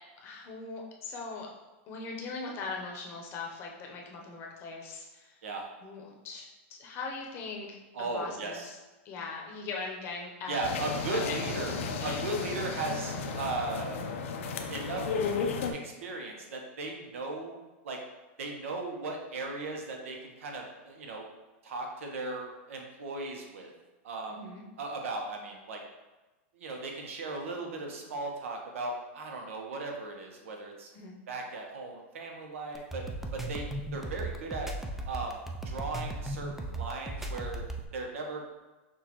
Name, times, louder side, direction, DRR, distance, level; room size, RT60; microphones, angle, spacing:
voice 1, 0.2-1.5 1.9-5.4 5.8-8.8 9.0-10.6 11.1-11.5 12.0-12.3 24.3-24.6 30.9-31.2, left 4 dB, 35° left, 0 dB, 0.7 m, -40 dB
voice 2, 7.9-8.7 10.5-15.1 15.7-17.5 17.8-18.0 18.4-21.3 21.6-23.7 24.0-24.5 24.8-25.8 26.5-30.9 31.3-33.0 33.3-33.6 33.9-34.7 35.1-38.5, right 3 dB, 85° right, 1 dB, 0.9 m, -37 dB
sound 1, 10.6-15.7, left 5 dB, 75° left, 0.5 m, -33 dB
sound 2, 32.7-37.9, right 2 dB, 5° right, 0.3 m, -36 dB
6.2 x 2.4 x 2.9 m, 1.2 s
supercardioid pair, 150°, 7 cm